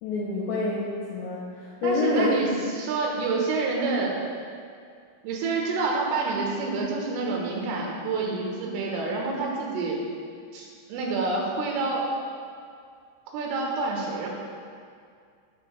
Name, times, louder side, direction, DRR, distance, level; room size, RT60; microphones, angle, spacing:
voice 1, 0.0-2.3, left 2 dB, 75° left, -4 dB, 2.8 m, -27 dB
voice 2, 1.8-4.2 5.2-10.0 10.5-12.1 13.3-14.3, right 3 dB, 80° right, -2 dB, 3.8 m, -28 dB
12.0 x 6.7 x 3.4 m, 2.2 s
omnidirectional pair, 5.9 m